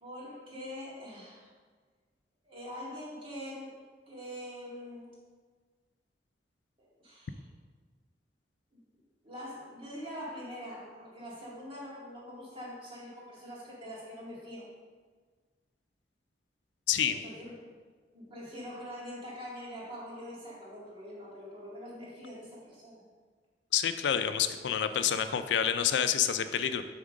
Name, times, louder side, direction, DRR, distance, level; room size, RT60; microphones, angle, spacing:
voice 1, 0.0-1.5 2.5-3.7 4.1-5.2 6.8-7.4 9.2-14.7 17.1-17.7 18.1-23.0, equal, 30° right, -6 dB, 1.9 m, -44 dB
voice 2, 16.9-17.2 23.7-26.8, left 9 dB, 85° left, 10 dB, 0.4 m, -28 dB
7.3 x 3.6 x 5.1 m, 1.5 s
head